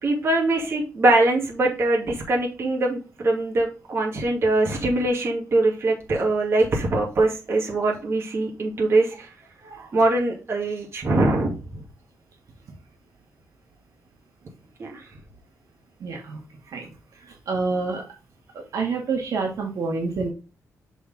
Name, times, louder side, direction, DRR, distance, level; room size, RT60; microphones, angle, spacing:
voice 1, 0.0-9.3 9.9-11.8 14.8-15.0, right 2 dB, 45° right, -1 dB, 2.5 m, -22 dB
voice 2, 16.0-16.4 16.7-16.9 17.5-18.0 18.7-20.3, right 4 dB, 65° right, 0 dB, 2.1 m, -27 dB
6.7 x 4.6 x 3.6 m, 0.32 s
wide cardioid pair, 135°, 6 cm